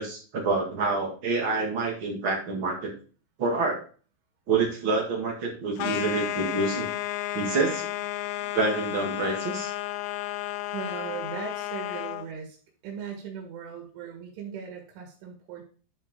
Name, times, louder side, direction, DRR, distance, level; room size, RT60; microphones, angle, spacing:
voice 1, 0.0-2.9 3.4-3.8 4.5-6.9 7.3-7.9 8.5-9.7, right 3 dB, 65° right, 0 dB, 1.2 m, -27 dB
sound 1, 5.8-12.3, left 15 dB, 80° left, 2.6 m, -32 dB
voice 2, 10.7-12.6 12.8-15.6, right 7 dB, 90° right, 1 dB, 4.5 m, -38 dB
11.5 x 5.0 x 3.7 m, 0.39 s
omnidirectional pair, 5.4 m